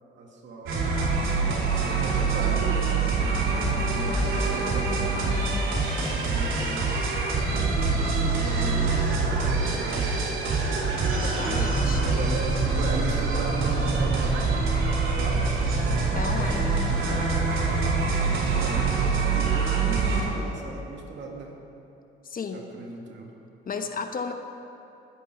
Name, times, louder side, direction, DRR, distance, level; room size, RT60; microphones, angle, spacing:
voice 1, 0.2-1.1 1.8-3.4 3.9-7.0 8.3-10.7 12.0-14.6 15.0-16.1 16.5-16.7 18.4-18.9 19.3-21.6 22.5-23.3, right 3 dB, 65° right, 0 dB, 2.3 m, -37 dB
sound 1, 0.7-20.2, right 4 dB, 85° right, 3.3 m, -25 dB
voice 2, 11.2-12.0 16.1-17.0 22.2-22.6 23.6-24.3, left 5 dB, 45° left, 6 dB, 1.1 m, -33 dB
21.0 x 8.4 x 4.6 m, 2.8 s
cardioid pair, 90°, 20 cm